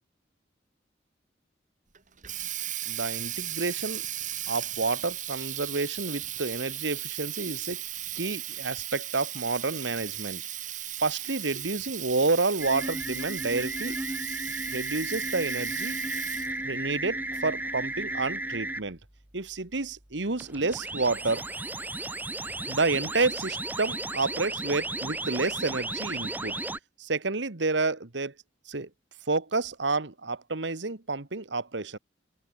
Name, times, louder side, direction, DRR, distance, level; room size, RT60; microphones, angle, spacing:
Water tap faucet, 1.9-16.6, right 12 dB, 45° right, 2.9 m, -36 dB
voice 1, 2.9-4.0 4.5-7.8 8.1-10.4 11.0-14.0 14.7-16.0 16.6-19.0 19.3-21.4 22.7-26.5 27.0-28.3 28.7-28.9 29.3-32.0, right 3 dB, 75° right, 1.6 m, -29 dB
sound 1, 12.6-18.8 20.4-26.8, right 2 dB, 10° right, 0.9 m, -34 dB
open air
head